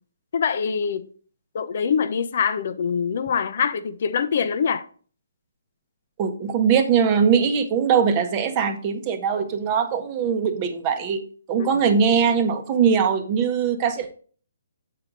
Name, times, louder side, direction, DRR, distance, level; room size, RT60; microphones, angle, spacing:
voice 1, 0.3-1.0 1.5-4.8 11.6-11.7, left 6 dB, 50° left, 0.6 m, -24 dB
voice 2, 6.2-11.2 11.5-14.2, right 6 dB, 25° right, 0.9 m, -21 dB
7.6 x 4.7 x 3.8 m
hypercardioid pair, 160°, 0 cm